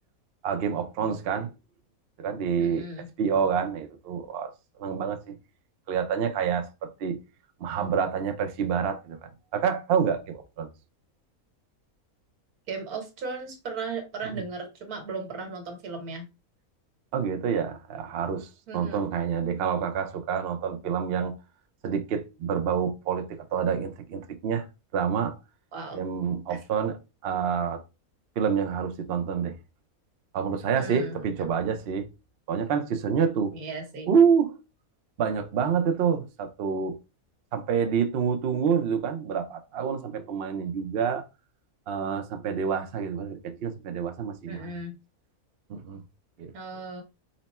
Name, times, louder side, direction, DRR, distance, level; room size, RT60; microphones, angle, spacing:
voice 1, 0.4-1.5 2.2-2.9 3.2-4.5 4.8-5.4 5.9-7.2 7.6-10.7 17.1-18.5 18.7-21.3 21.8-24.6 24.9-25.3 25.9-27.0 27.2-27.8 28.4-29.5 30.3-32.1 32.5-33.5 34.1-34.5 35.2-37.0 37.5-41.2 41.9-44.8 45.7-46.0 46.4-46.5, right 7 dB, 60° right, 0.6 m, -27 dB
voice 2, 2.6-3.1 12.7-16.3 18.7-19.0 25.7-26.0 26.5-26.6 30.7-31.2 33.5-34.1 44.5-44.9 46.5-47.0, right 3 dB, 85° right, 1.6 m, -36 dB
4.1 x 2.1 x 4.1 m
omnidirectional pair, 1.5 m